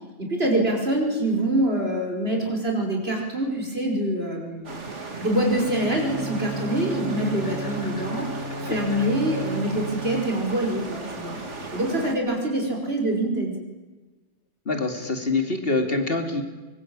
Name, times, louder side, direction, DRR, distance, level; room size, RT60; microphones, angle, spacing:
voice 1, 0.2-4.7 5.2-8.3 8.6-13.5, right 1 dB, 60° right, 1 dB, 5.4 m, -25 dB
sound 1, 4.6-12.1, right 3 dB, 90° right, 2.7 m, -36 dB
Bowed string instrument, 5.5-10.4, right 3 dB, 80° left, 7.4 m, -34 dB
voice 2, 14.7-16.4, left 3 dB, 55° left, 5 dB, 2.8 m, -25 dB
24.0 x 22.5 x 8.8 m, 1.2 s
omnidirectional pair, 1.2 m